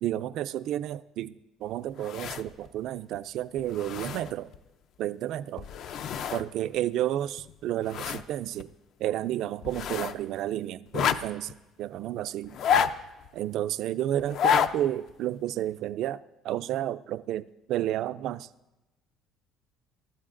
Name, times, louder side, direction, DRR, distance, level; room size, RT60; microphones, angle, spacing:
voice 1, 0.0-4.5 5.0-5.7 6.3-8.7 9.0-12.6 13.3-18.5, right 12 dB, 55° right, 0.3 m, -31 dB
sound 1, 2.0-2.7 3.1-3.2 3.6-4.6 5.6-6.5 6.7-6.8 7.4-8.3 8.6-8.7 9.6-10.2 10.9-11.5 12.4-13.3 14.2-14.7 15.1-15.2, left 8 dB, 50° left, 0.4 m, -29 dB
23.0 x 12.5 x 2.5 m
cardioid pair, 170°, 0 cm